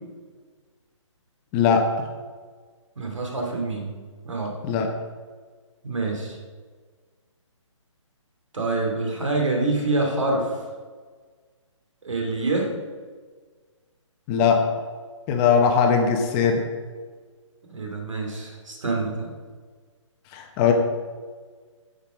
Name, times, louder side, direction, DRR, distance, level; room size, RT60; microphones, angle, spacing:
voice 1, 1.5-2.1 4.6-4.9 14.3-14.7 15.3-16.6 20.3-20.7, left 6 dB, 20° left, 4 dB, 0.9 m, -20 dB
voice 2, 3.0-3.9 4.2-4.5 5.8-6.4 8.5-10.6 12.0-12.7 17.7-19.3, right 2 dB, 70° right, 1 dB, 2.9 m, -26 dB
14.0 x 5.3 x 5.1 m, 1.5 s
hypercardioid pair, 145°, 17 cm